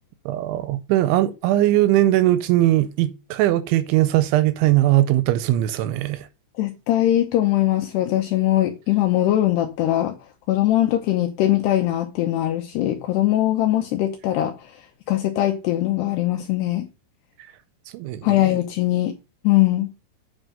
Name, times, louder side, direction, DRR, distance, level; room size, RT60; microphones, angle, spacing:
voice 1, 0.3-6.3 17.9-18.4, right 14 dB, 80° right, 2.8 m, -20 dB
voice 2, 6.6-10.2 10.5-14.5 15.1-16.9 18.2-19.1 19.4-19.9, left 14 dB, 80° left, 2.5 m, -21 dB
9.1 x 5.4 x 5.3 m
omnidirectional pair, 5.7 m